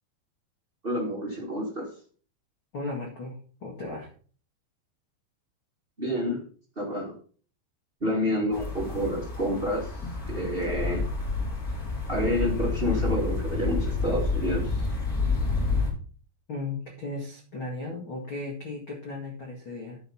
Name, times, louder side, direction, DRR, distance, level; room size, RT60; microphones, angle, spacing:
voice 1, 0.8-1.9 6.0-6.4 6.7-7.1 8.0-9.9 10.3-11.0 12.1-14.9, equal, 55° right, -3 dB, 0.6 m, -28 dB
voice 2, 2.7-4.1 16.5-20.0, left 2 dB, 65° left, -1 dB, 1.2 m, -36 dB
sound 1, 8.5-15.9, left 3 dB, 20° left, 3.7 m, -29 dB
11.0 x 5.2 x 5.6 m, 0.42 s
omnidirectional pair, 5.5 m